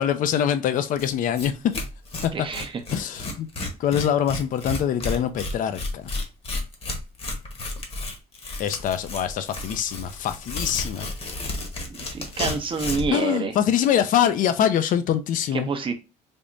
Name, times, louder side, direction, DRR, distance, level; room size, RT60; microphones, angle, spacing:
voice 1, 0.0-1.8 2.2-2.3 2.9-3.5 3.8-6.2 8.6-11.1 13.1-15.7, left 9 dB, 50° left, 0.4 m, -24 dB
Tearing, 1.0-1.1 1.4-1.5 1.7-13.2, left 2 dB, 35° left, 1.0 m, -32 dB
voice 2, 2.3-2.8 12.0-13.5 15.5-15.9, right 5 dB, 30° right, 0.6 m, -28 dB
3.5 x 2.0 x 3.8 m
cardioid pair, 110°, 17 cm